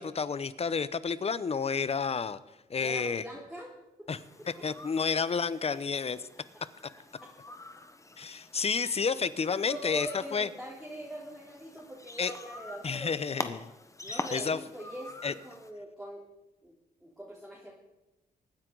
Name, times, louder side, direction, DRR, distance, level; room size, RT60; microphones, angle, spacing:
voice 1, 0.0-2.4 2.7-3.2 4.1-4.2 4.6-6.2 8.2-10.5 12.2-12.3 12.8-13.6 14.1-14.6 15.2-15.3, left 5 dB, 35° left, 16 dB, 0.8 m, -30 dB
voice 2, 2.8-4.1 5.0-5.4 7.2-7.3 9.7-13.5 14.0-16.2 16.6-16.8 17.0-17.7, right 1 dB, ahead, -5 dB, 3.4 m, -43 dB
sound 1, 4.1-15.7, left 2 dB, 20° left, 1.1 m, -45 dB
23.5 x 9.6 x 4.0 m, 1.0 s
cardioid pair, 70°, 17 cm